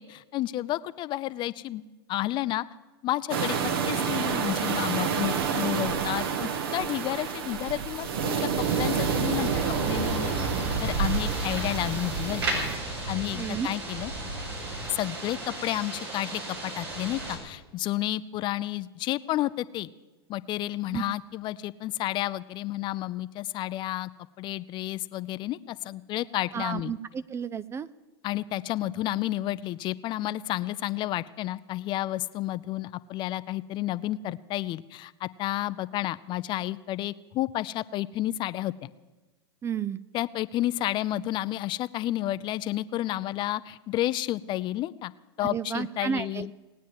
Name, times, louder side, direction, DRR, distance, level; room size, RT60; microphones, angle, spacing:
voice 1, 0.0-1.8 2.1-2.7 3.0-9.5 9.9-10.3 10.8-12.6 13.1-14.1 14.9-19.9 20.3-24.1 24.4-26.9 28.2-38.9 40.1-45.1 45.4-46.5, left 15 dB, 35° left, 16 dB, 0.5 m, -31 dB
sound 1, 3.3-12.8, right 6 dB, 65° right, 1.4 m, -29 dB
sound 2, 8.6-17.4, right 1 dB, 85° right, 5.2 m, -34 dB
voice 2, 13.4-13.7 20.9-21.0 26.5-27.9 39.6-40.0 45.4-46.5, right 7 dB, 20° right, 16 dB, 0.4 m, -32 dB
18.5 x 9.4 x 7.5 m, 1.2 s
hypercardioid pair, 100°, 13 cm